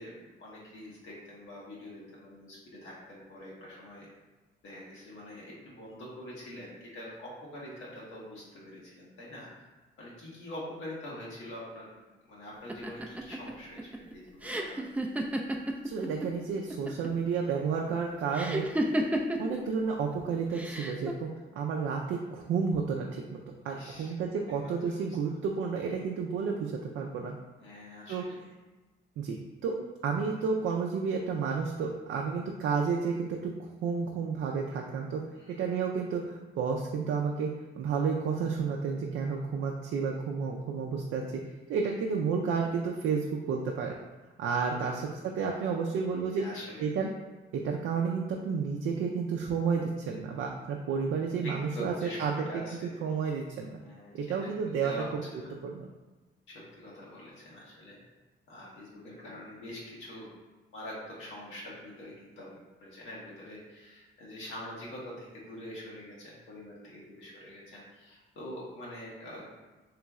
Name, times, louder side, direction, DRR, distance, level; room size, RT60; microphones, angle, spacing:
voice 1, 0.0-4.1 4.6-9.5 10.0-14.9 23.6-24.1 24.4-24.9 27.6-28.4 35.3-35.8 44.8-44.9 46.1-46.9 51.4-52.9 53.8-55.5 56.5-58.0 58.5-60.3 60.7-69.5, left 1 dB, 80° left, -5 dB, 1.2 m, -45 dB
sound 1, 12.7-16.3 16.6-17.2 18.3-19.6 20.5-21.1, right 1 dB, 5° right, 0.4 m, -31 dB
voice 2, 15.8-18.7 19.4-21.3 21.6-23.4 23.6-27.3 28.1-28.2 29.2-29.8 30.0-35.2 35.6-37.5 37.8-41.2 41.7-43.9 44.4-46.4 46.8-47.1 47.6-52.6 53.0-53.8 54.1-54.9 55.6-55.9, right 5 dB, 75° right, 0 dB, 0.5 m, -31 dB
3.2 x 3.0 x 3.5 m, 1.2 s
cardioid pair, 90°, 20 cm